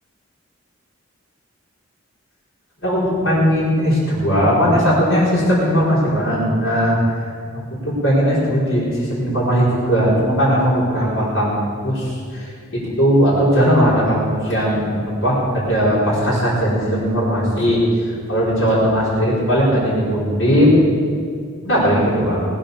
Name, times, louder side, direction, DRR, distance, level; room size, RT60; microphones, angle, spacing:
voice 1, 2.8-7.0 7.8-17.8 18.3-20.7 21.6-22.5, equal, 70° left, -7 dB, 5.0 m, -18 dB
20.0 x 7.8 x 6.9 m, 2.2 s
head